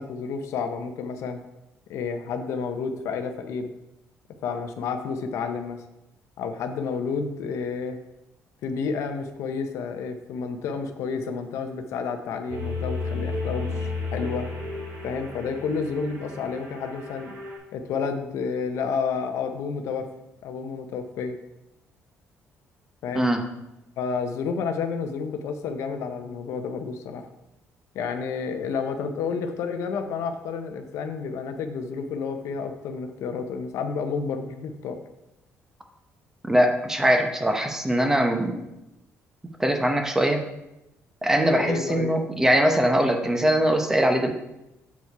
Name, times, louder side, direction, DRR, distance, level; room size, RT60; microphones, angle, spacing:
voice 1, 0.0-1.4 1.9-3.7 4.4-5.8 6.4-8.0 8.6-14.5 15.0-17.3 17.7-20.1 20.4-21.4 23.0-23.3 24.0-27.3 27.9-35.0 41.6-42.2, left 5 dB, 75° left, 6 dB, 0.7 m, -30 dB
sound 1, 12.5-17.6, left 3 dB, 80° right, 2.5 m, -33 dB
voice 2, 36.5-38.7 39.6-40.4 41.2-44.3, equal, 10° right, 5 dB, 0.8 m, -22 dB
7.1 x 4.6 x 4.6 m, 0.92 s
cardioid pair, 130°, 5 cm